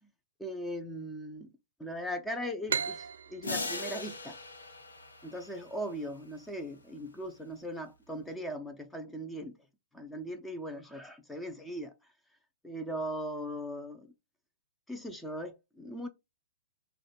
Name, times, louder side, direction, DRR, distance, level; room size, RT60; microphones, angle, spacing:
voice 1, 0.4-1.5 1.8-4.4 5.2-9.6 9.9-11.9 12.6-14.1 14.9-16.1, equal, 5° left, 0.5 m, -39 dB
sound 1, 2.7-6.1, right 6 dB, 65° right, 0.3 m, -38 dB
sound 2, 3.4-5.9, left 3 dB, 75° left, 0.9 m, -39 dB
4.8 x 2.2 x 2.4 m
figure-of-eight pair, 115°, 0 cm